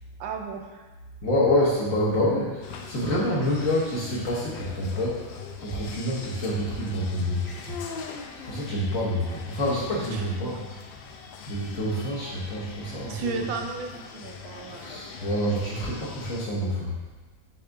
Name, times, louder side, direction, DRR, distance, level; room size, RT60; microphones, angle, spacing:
voice 1, 0.2-0.8 10.1-10.7 13.1-15.0, right 5 dB, 75° right, 3 dB, 1.3 m, -35 dB
voice 2, 1.2-7.9 8.4-10.6 11.5-13.5 14.8-17.0, left 1 dB, 50° left, -6 dB, 1.3 m, -27 dB
sound 1, 2.6-16.5, left 5 dB, 75° left, 1.3 m, -42 dB
7.7 x 3.5 x 3.5 m, 1.2 s
omnidirectional pair, 2.2 m